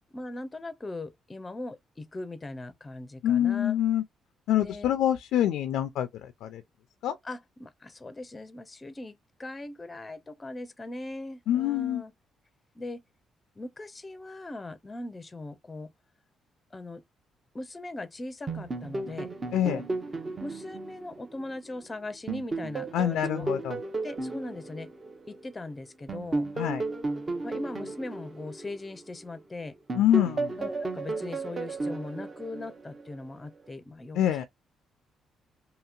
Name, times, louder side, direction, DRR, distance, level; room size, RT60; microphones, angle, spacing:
voice 1, 0.1-3.8 4.6-4.9 7.2-12.1 12.8-13.0 13.6-15.9 16.7-17.0 17.5-19.3 19.6-19.8 20.4-23.5 24.0-24.9 25.3-26.5 27.4-29.8 30.6-34.5, left 2 dB, 20° left, 0.5 m, -40 dB
voice 2, 3.2-4.0 4.5-6.6 7.0-7.2 11.5-12.0 19.5-19.8 22.9-23.8 26.6-26.8 29.9-30.6 34.1-34.5, left 11 dB, 85° left, 0.3 m, -26 dB
sound 1, 18.5-21.8 22.3-25.5 26.1-29.4 29.9-33.1, right 3 dB, 35° right, 0.7 m, -34 dB
2.8 x 2.7 x 2.4 m
cardioid pair, 90°, 0 cm